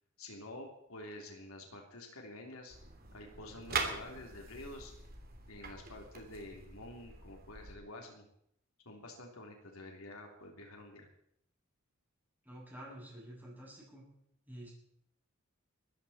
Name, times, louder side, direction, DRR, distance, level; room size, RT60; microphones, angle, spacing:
voice 1, 0.2-2.8 3.1-4.9 5.5-8.3 8.9-11.1, left 1 dB, 85° left, 2 dB, 3.4 m, -49 dB
sound 1, 2.7-7.7, right 4 dB, 45° right, 2.9 m, -42 dB
voice 2, 12.4-14.1 14.5-14.7, right 1 dB, 10° right, -5 dB, 7.7 m, -49 dB
20.5 x 14.5 x 4.3 m, 0.71 s
head